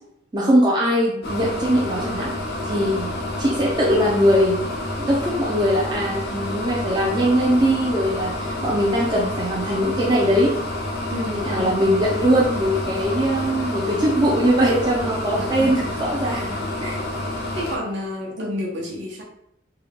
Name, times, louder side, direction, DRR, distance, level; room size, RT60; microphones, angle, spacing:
voice 1, 0.3-2.3 2.6-3.1 3.4-4.6 5.0-10.5 11.4-17.0, equal, 20° right, -5 dB, 0.5 m, -21 dB
sound 1, 1.2-17.8, left 1 dB, 50° left, 0.6 m, -29 dB
voice 2, 11.1-11.8 15.4-16.2 16.5-16.7 17.5-19.2, left 1 dB, 55° right, -1 dB, 0.9 m, -30 dB
3.5 x 2.3 x 3.3 m, 0.76 s
head